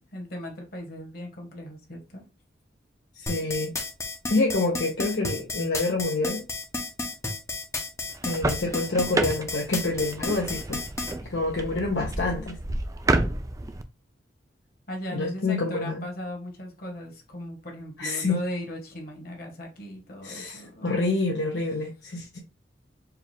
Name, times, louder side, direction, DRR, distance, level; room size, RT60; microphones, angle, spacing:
voice 1, 0.1-2.2 13.1-13.3 14.9-21.0, left 1 dB, 55° left, 1 dB, 1.4 m, -37 dB
voice 2, 3.2-3.7 4.3-6.4 8.2-10.8 11.3-12.6 15.1-16.0 18.0-18.4 20.2-22.4, left 2 dB, 70° left, -1 dB, 0.8 m, -27 dB
sound 1, 3.3-11.1, left 3 dB, 15° left, 0.7 m, -32 dB
sound 2, 8.1-13.8, right 2 dB, 20° right, 0.3 m, -30 dB
4.6 x 2.4 x 3.4 m, 0.29 s
head